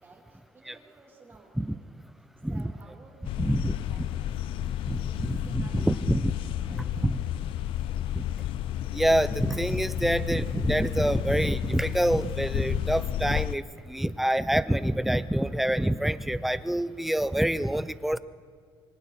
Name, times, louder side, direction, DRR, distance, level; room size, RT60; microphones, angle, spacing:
voice 1, 0.0-1.9 2.5-4.4 5.0-6.2 6.5-7.1, right 4 dB, 25° right, 0 dB, 3.3 m, -55 dB
sound 1, 2.4-11.9, left 5 dB, 25° left, 3.8 m, -58 dB
sound 2, 3.2-13.6, left 12 dB, 70° left, 0.4 m, -32 dB
voice 2, 3.4-3.7 4.9-6.3 6.7-7.2 8.2-8.3 8.9-18.2, right 1 dB, ahead, 14 dB, 0.5 m, -26 dB
25.5 x 24.0 x 4.3 m, 2.1 s
cardioid pair, 165°, 10 cm